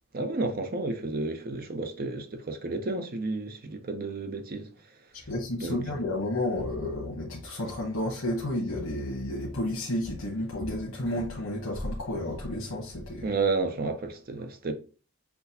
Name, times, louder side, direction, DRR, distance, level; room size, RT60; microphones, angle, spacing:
voice 1, 0.1-4.7 5.5-5.8 13.2-14.7, right 3 dB, 45° right, 0.6 m, -31 dB
voice 2, 5.3-13.3, left 1 dB, 80° left, 1.0 m, -31 dB
5.9 x 2.3 x 2.7 m
head